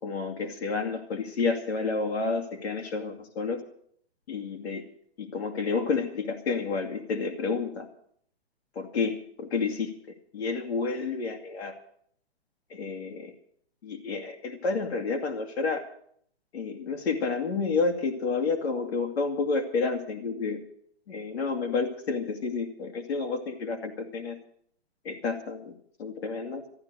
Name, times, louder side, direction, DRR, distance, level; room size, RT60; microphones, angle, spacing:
voice 1, 0.0-3.6 4.3-4.8 5.2-7.9 8.8-9.9 10.3-11.7 12.7-13.3 13.8-15.8 16.5-20.6 21.1-24.4 25.0-25.7 26.0-26.7, left 4 dB, 75° left, 2 dB, 2.3 m, -30 dB
13.5 x 11.0 x 7.9 m, 0.64 s
hypercardioid pair, 160°, 32 cm